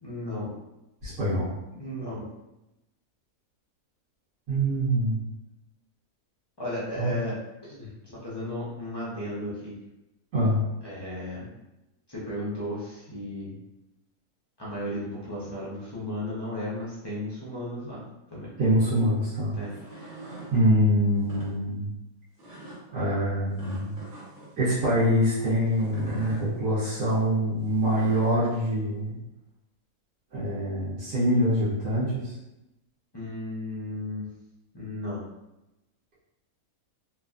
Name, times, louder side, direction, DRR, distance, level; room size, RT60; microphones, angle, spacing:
voice 1, 0.0-0.5 1.8-2.3 6.6-7.4 7.8-9.8 10.8-11.5 12.1-13.6 14.6-18.0 18.3-18.5 19.6-20.2 33.1-34.2 34.7-35.3, left 1 dB, 35° left, -7 dB, 0.4 m, -34 dB
voice 2, 1.0-1.5 4.5-5.3 7.0-7.1 10.3-10.6 18.6-19.6 20.5-21.9 22.9-24.0 24.6-29.2 30.3-32.3, equal, 80° right, -11 dB, 1.3 m, -24 dB
sound 1, 19.6-20.5 21.2-21.5 22.4-22.8 23.6-24.5 25.7-26.4 27.6-28.3, right 1 dB, 35° right, 1.0 m, -43 dB
2.9 x 2.4 x 2.4 m, 0.92 s
omnidirectional pair, 1.6 m